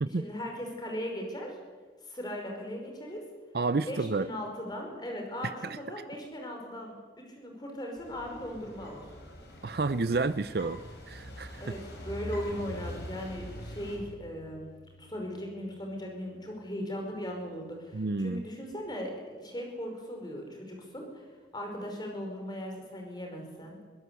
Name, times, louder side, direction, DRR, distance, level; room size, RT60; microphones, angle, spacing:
voice 1, 0.1-1.6 2.0-3.2 3.9-9.0 11.6-21.2 21.5-23.9, equal, 25° left, 2 dB, 5.2 m, -38 dB
voice 2, 3.5-4.3 5.6-5.8 9.6-10.8 11.1-11.6 17.9-18.4, right 3 dB, 55° right, 13 dB, 0.5 m, -30 dB
sound 1, 7.9-14.0, equal, 70° left, 6.0 m, -44 dB
Bass guitar, 12.5-18.7, left 2 dB, 55° left, 1.0 m, -53 dB
24.0 x 16.5 x 8.3 m, 1.4 s
head